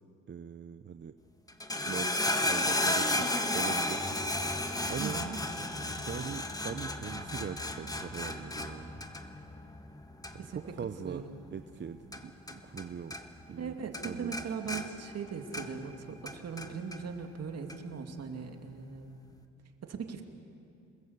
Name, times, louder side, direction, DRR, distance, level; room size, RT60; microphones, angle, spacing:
voice 1, 0.3-1.2 1.9-4.1 4.9-5.2 6.1-9.0 10.3-11.2 11.5-13.2 13.5-13.8 14.0-14.9, right 7 dB, 40° right, 9 dB, 0.8 m, -41 dB
sound 1, 1.5-12.9 13.1-13.7 13.9-15.9 16.3-17.0 17.7-17.8, left 1 dB, 10° left, 1.6 m, -33 dB
voice 2, 5.0-5.4 10.4-10.7 11.0-11.3 13.6-19.2 19.8-20.2, right 6 dB, 55° right, 5 dB, 2.6 m, -39 dB
27.5 x 20.5 x 8.2 m, 2.7 s
cardioid pair, 90°, 30 cm